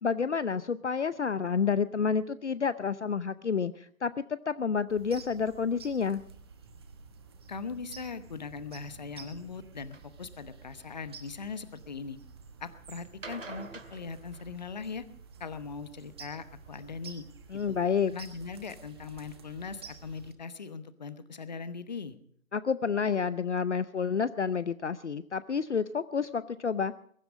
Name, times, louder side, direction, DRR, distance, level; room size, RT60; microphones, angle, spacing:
voice 1, 0.0-4.1 4.5-6.2 17.5-18.1 22.5-26.9, left 6 dB, 55° left, 15 dB, 0.7 m, -29 dB
sound 1, 4.9-20.3, right 5 dB, 20° right, 1.3 m, -51 dB
voice 2, 7.5-12.2 12.6-15.0 15.4-17.2 17.7-17.8 18.1-22.2, left 5 dB, 30° left, 13 dB, 1.0 m, -40 dB
sound 2, 9.9-10.1 10.8-11.5 13.0-15.0 16.6-17.2 17.9-18.0 18.5-18.6 19.0-19.1 19.2-19.3, right 3 dB, 65° right, 2.2 m, -47 dB
22.0 x 12.5 x 5.2 m, 0.63 s
figure-of-eight pair, 155°, 42 cm